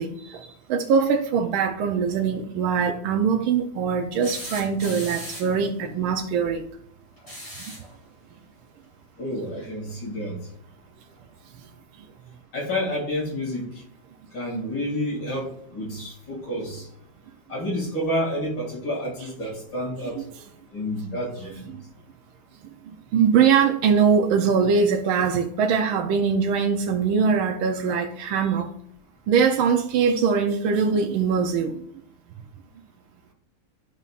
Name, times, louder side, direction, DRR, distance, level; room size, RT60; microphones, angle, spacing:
voice 1, 0.0-6.6 20.2-20.3 21.7-21.8 22.9-28.7 29.3-31.7, right 6 dB, 80° right, 1.5 m, -22 dB
sound 1, 4.2-5.6 7.2-7.9 9.6-9.7 11.2-11.3, equal, 15° left, 2.6 m, -38 dB
voice 2, 9.2-10.4 12.5-13.8 14.3-16.9 17.5-20.2 20.7-21.7, equal, 65° left, 3.4 m, -29 dB
12.0 x 5.4 x 2.5 m
omnidirectional pair, 2.2 m